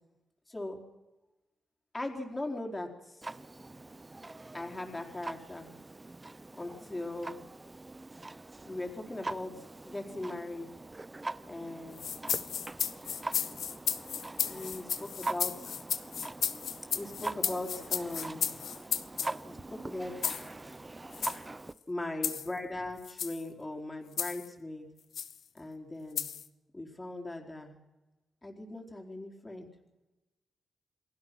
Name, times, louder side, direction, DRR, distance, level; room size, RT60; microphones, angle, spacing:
voice 1, 0.5-0.8 1.9-3.3 4.5-5.7 6.6-7.4 8.6-9.6 9.8-10.7 11.5-12.1 14.5-15.7 16.9-18.5 19.4-20.1 21.9-24.9 25.5-26.3 26.7-27.8 28.4-29.7, left 2 dB, 20° left, 2 dB, 4.2 m, -39 dB
Clock, 3.2-21.7, right 2 dB, 20° right, 0.8 m, -43 dB
sound 1, 12.0-19.3 20.2-20.5 21.1-21.4 22.2-22.5 23.0-23.4 24.2-24.5 25.1-25.3 26.2-26.5, left 8 dB, 75° left, 1.2 m, -34 dB
28.5 x 19.0 x 6.1 m, 1.0 s
cardioid pair, 75°, 0 cm